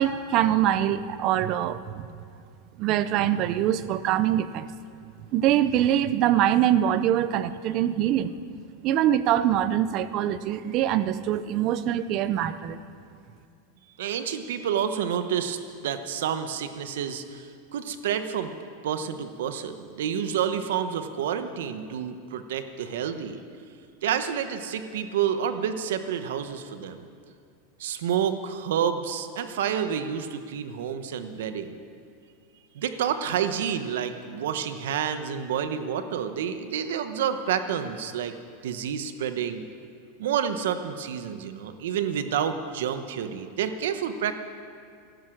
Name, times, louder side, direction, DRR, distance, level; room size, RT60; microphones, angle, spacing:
voice 1, 0.0-2.1 2.8-4.7 5.3-8.3 8.8-12.8, right 11 dB, 30° right, 14 dB, 0.5 m, -24 dB
voice 2, 14.0-18.5 18.8-23.4 24.0-27.1 27.8-31.8 32.7-38.3 38.6-39.6 40.2-44.4, right 8 dB, 75° right, 9 dB, 1.0 m, -29 dB
15.5 x 12.0 x 6.4 m, 2.3 s
supercardioid pair, 175°, 0 cm